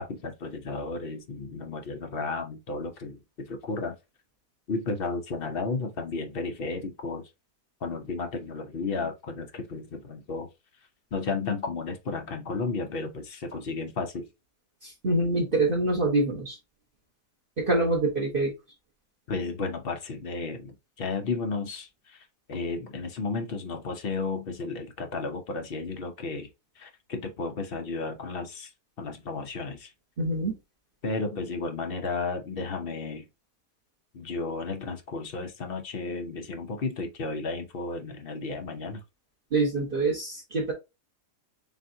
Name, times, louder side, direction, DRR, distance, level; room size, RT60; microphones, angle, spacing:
voice 1, 0.0-3.9 4.7-7.2 7.8-10.5 11.1-14.3 19.3-26.5 26.8-28.7 29.0-29.9 31.0-33.3 34.1-39.0, left 3 dB, 50° left, 0.7 m, -33 dB
voice 2, 14.8-16.6 17.6-18.5 30.2-30.6 39.5-40.7, right 2 dB, 35° right, 1.3 m, -25 dB
7.1 x 2.5 x 2.6 m
omnidirectional pair, 1.8 m